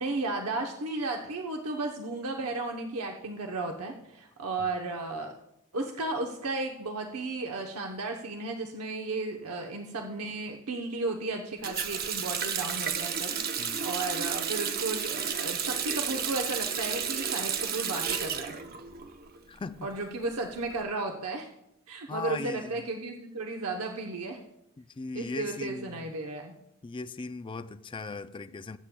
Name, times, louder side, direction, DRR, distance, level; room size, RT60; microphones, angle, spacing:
voice 1, 0.0-5.3 5.7-18.6 19.8-21.5 21.9-24.4 25.1-26.6, right 3 dB, 75° right, 2 dB, 0.9 m, -34 dB
Water tap faucet, 11.6-19.4 19.7-20.7, right 7 dB, 45° right, 0.8 m, -32 dB
voice 2, 19.5-19.9 22.1-22.7 24.8-26.1 26.8-28.8, left 4 dB, 20° left, 13 dB, 0.4 m, -38 dB
21.0 x 8.6 x 2.3 m, 0.85 s
head